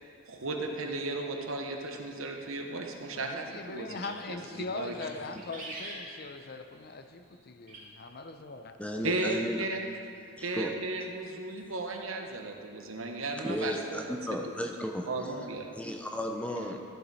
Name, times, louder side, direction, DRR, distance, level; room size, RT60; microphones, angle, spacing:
voice 1, 0.3-4.9 9.0-9.8 10.4-14.2 15.1-15.7, right 2 dB, 80° right, 3 dB, 1.1 m, -35 dB
voice 2, 3.1-8.8, left 3 dB, 50° left, 8 dB, 0.5 m, -41 dB
sound 1, 3.8-4.3 4.8-5.1 5.4-6.5 7.7-7.8, right 2 dB, 40° right, 2.1 m, -43 dB
voice 3, 8.8-9.7 10.4-10.7 13.4-15.1 15.7-16.8, equal, 5° left, 2 dB, 0.6 m, -34 dB
13.5 x 7.2 x 4.1 m, 2.3 s
head